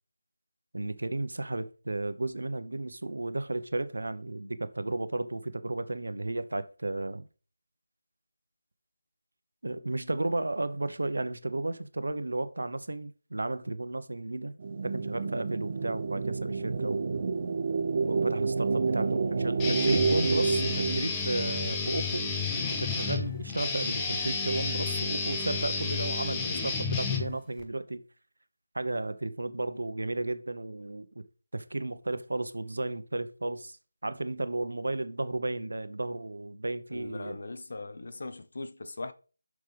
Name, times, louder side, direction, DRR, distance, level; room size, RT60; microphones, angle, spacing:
voice 1, 0.7-7.2 9.6-14.5 14.8-17.0 18.0-22.3 22.7-28.0 28.7-31.2 31.5-33.8 34.0-37.4, right 2 dB, 85° right, 1.0 m, -33 dB
sound 1, 14.6-21.0, right 4 dB, 35° right, 0.9 m, -29 dB
Guitar, 19.6-27.6, left 4 dB, 10° left, 0.8 m, -31 dB
voice 2, 36.9-39.1, left 2 dB, 55° left, 0.9 m, -40 dB
9.6 x 6.4 x 3.5 m
figure-of-eight pair, 175°, 0 cm